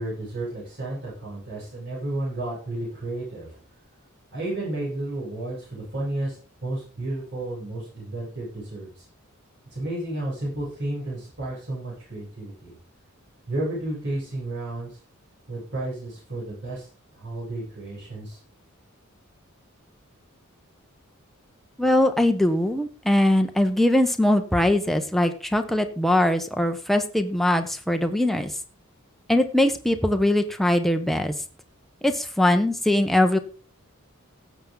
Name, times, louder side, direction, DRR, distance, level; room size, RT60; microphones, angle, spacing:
voice 1, 0.0-3.6 4.3-9.0 9.7-12.7 13.5-14.9 15.5-16.9 17.1-18.4, right 1 dB, 55° right, -6 dB, 7.7 m, -32 dB
voice 2, 21.8-28.5 29.3-31.3 32.0-33.4, left 1 dB, ahead, 6 dB, 1.0 m, -21 dB
16.5 x 7.2 x 3.9 m, 0.39 s
head